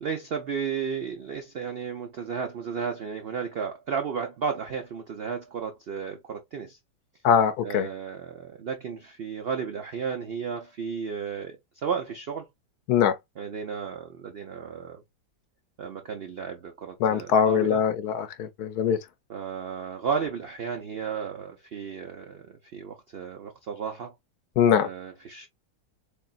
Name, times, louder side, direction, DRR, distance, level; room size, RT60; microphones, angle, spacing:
voice 1, 0.0-6.8 7.6-12.5 13.4-15.0 15.8-17.8 19.3-24.1 24.8-25.5, right 6 dB, 80° right, 0.5 m, -33 dB
voice 2, 7.2-7.9 12.9-13.2 17.0-19.0 24.6-24.9, left 8 dB, 70° left, 1.1 m, -22 dB
3.9 x 3.4 x 2.3 m
omnidirectional pair, 1.8 m